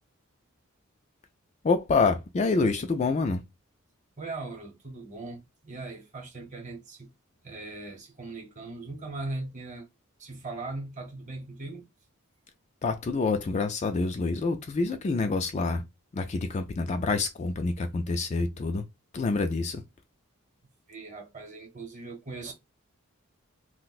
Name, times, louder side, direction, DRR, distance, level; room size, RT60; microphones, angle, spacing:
voice 1, 1.6-3.4 12.8-15.8 16.1-18.8 19.1-19.8, left 3 dB, 30° left, 0.3 m, -27 dB
voice 2, 4.2-7.1 7.4-9.9 10.2-11.9 20.9-22.5, right 2 dB, 35° right, 0.9 m, -39 dB
2.5 x 2.1 x 3.9 m
head